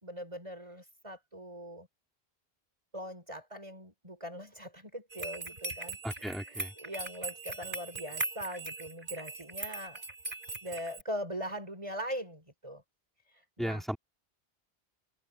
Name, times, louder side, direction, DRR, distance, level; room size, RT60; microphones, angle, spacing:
voice 1, 0.0-1.9 2.9-10.0 10.6-12.8 13.6-13.8, equal, 30° right, 5.2 m, -41 dB
sound 1, 5.1-11.0, right 2 dB, 55° right, 4.0 m, -40 dB
voice 2, 6.0-6.7 13.6-14.0, equal, ahead, 4.6 m, -35 dB
omnidirectional pair, 1.1 m